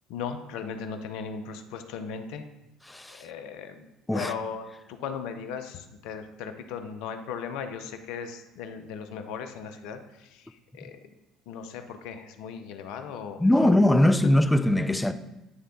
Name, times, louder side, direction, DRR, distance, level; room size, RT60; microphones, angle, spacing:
voice 1, 0.1-2.4 3.1-3.9 4.1-11.0 11.5-13.7, left 6 dB, 70° left, 0.6 m, -37 dB
voice 2, 2.9-3.2 4.1-4.3 13.4-15.1, left 1 dB, 10° left, 0.5 m, -21 dB
9.4 x 3.3 x 3.7 m
hypercardioid pair, 60°, 0 cm